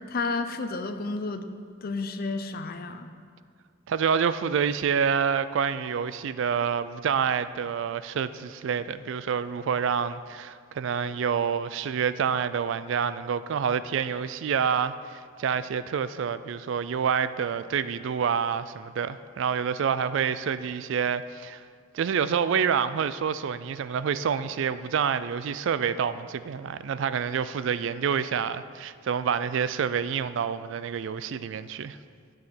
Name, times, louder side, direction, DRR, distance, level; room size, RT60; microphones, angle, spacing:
voice 1, 0.1-1.5 1.8-3.1, left 3 dB, 45° left, 9 dB, 0.5 m, -31 dB
voice 2, 3.9-21.6 21.9-32.0, right 7 dB, 65° right, 14 dB, 0.3 m, -27 dB
12.5 x 6.3 x 4.3 m, 2.1 s
head